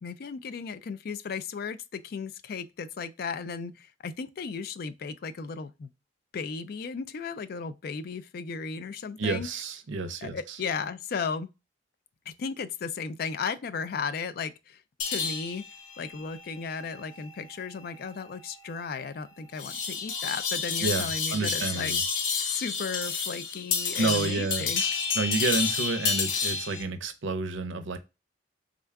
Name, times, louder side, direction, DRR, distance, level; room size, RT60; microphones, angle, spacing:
voice 1, 0.0-5.9 6.3-9.5 10.2-11.5 12.3-15.6 16.0-21.9 22.4-24.8, left 5 dB, 50° left, 0.3 m, -35 dB
voice 2, 9.2-10.6 20.8-22.0 24.0-24.7 25.1-28.0, right 3 dB, 80° right, 0.6 m, -30 dB
sound 1, 15.0-26.8, left 5 dB, 90° left, 0.7 m, -31 dB
3.6 x 2.2 x 3.4 m
head